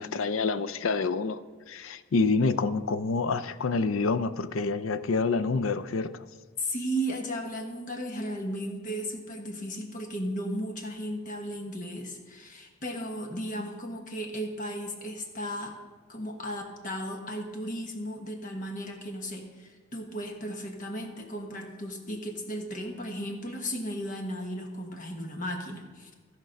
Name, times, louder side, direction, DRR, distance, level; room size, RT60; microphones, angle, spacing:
voice 1, 0.0-1.4 1.7-6.3, left 4 dB, 85° left, 0.5 m, -27 dB
voice 2, 6.6-15.7 16.1-26.1, equal, 40° left, 1.2 m, -35 dB
15.5 x 5.2 x 5.2 m
head